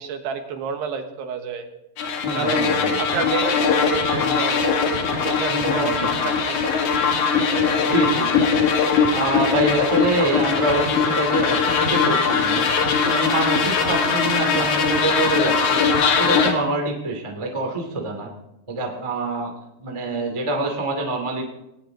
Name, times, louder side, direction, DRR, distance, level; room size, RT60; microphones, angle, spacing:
voice 1, 0.0-1.7 2.3-4.8 5.1-6.9 7.5-7.8, right 6 dB, 70° right, 6 dB, 3.2 m, -30 dB
sound 1, 2.0-16.5, left 5 dB, 55° left, 2.4 m, -21 dB
voice 2, 2.2-3.0 4.2-4.4 5.5-6.1 7.8-8.3 9.1-12.7 13.0-15.8 16.2-18.3 18.7-19.5 19.8-21.4, right 2 dB, 15° right, 2 dB, 1.2 m, -25 dB
18.5 x 18.5 x 3.9 m, 0.90 s
omnidirectional pair, 5.2 m